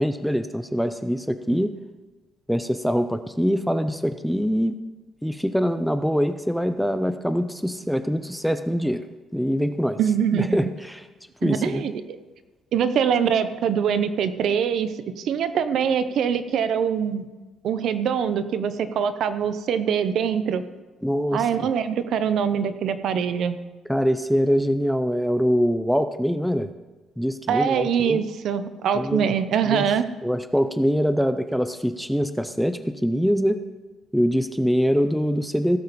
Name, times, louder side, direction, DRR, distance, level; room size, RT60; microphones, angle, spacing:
voice 1, 0.0-1.7 2.5-4.8 5.2-9.0 9.3-10.0 10.3-11.1 11.4-11.8 21.0-21.5 23.9-26.7 27.2-28.2 28.9-29.3 29.6-29.9 30.2-33.6 34.1-35.8, equal, ahead, 10 dB, 0.4 m, -23 dB
voice 2, 10.0-10.7 11.4-11.9 12.7-17.3 17.6-20.6 21.3-23.6 27.5-30.0, right 7 dB, 55° right, 11 dB, 0.7 m, -23 dB
16.5 x 7.0 x 4.1 m, 1.2 s
cardioid pair, 165°, 0 cm